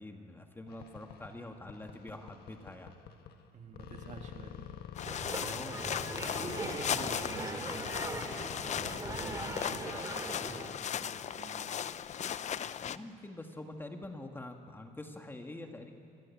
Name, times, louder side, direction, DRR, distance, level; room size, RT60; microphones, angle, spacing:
voice 1, 0.0-2.9 5.5-6.0 12.4-15.9, left 1 dB, 10° left, 4 dB, 1.9 m, -46 dB
sound 1, 0.7-3.5 3.7-9.8, left 8 dB, 70° left, 1.6 m, -49 dB
voice 2, 3.5-4.6 6.1-8.2 8.7-11.7, right 5 dB, 45° right, 4 dB, 2.2 m, -49 dB
sound 2, 5.0-13.0, left 9 dB, 45° left, 0.7 m, -37 dB
sound 3, 5.0-10.7, right 2 dB, 20° right, 2.6 m, -40 dB
26.0 x 18.0 x 8.6 m, 2.5 s
cardioid pair, 110°, 17 cm